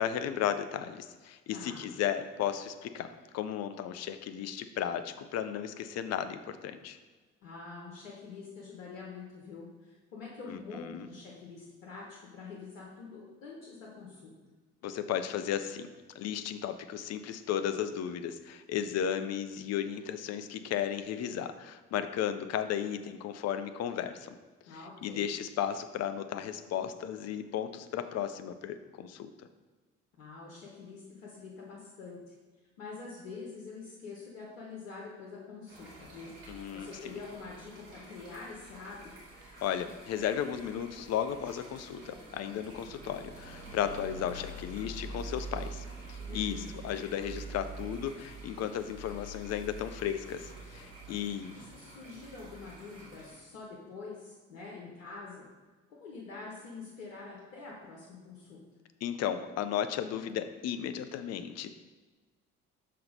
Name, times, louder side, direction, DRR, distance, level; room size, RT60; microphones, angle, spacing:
voice 1, 0.0-3.1 3.3-7.0 10.5-11.1 14.8-15.9 16.1-24.4 25.0-29.3 36.5-36.9 39.6-51.5 59.0-61.7, left 9 dB, 40° left, 10 dB, 0.6 m, -34 dB
voice 2, 1.5-1.9 7.4-14.3 24.7-25.3 30.2-32.3 32.8-36.3 36.7-39.1 46.3-46.8 51.5-55.5 55.9-58.6, left 4 dB, 75° left, -3 dB, 1.1 m, -46 dB
sound 1, 35.7-53.3, right 2 dB, 65° right, 2.0 m, -46 dB
5.9 x 4.2 x 5.1 m, 1.3 s
figure-of-eight pair, 50°, 39 cm